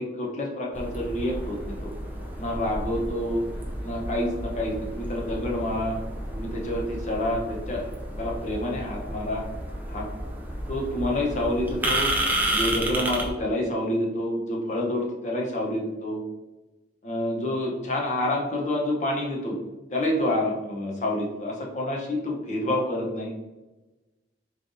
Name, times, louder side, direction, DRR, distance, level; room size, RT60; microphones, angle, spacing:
voice 1, 0.0-1.8 2.4-3.4 3.8-6.0 6.3-7.9 8.2-9.4 9.9-10.1 10.7-12.1 12.5-16.2 17.0-19.6 19.9-23.3, left 1 dB, 40° left, -1 dB, 0.7 m, -28 dB
sound 1, 0.7-13.3, right 1 dB, 10° right, 0.4 m, -31 dB
3.7 x 3.2 x 2.6 m, 1.1 s
head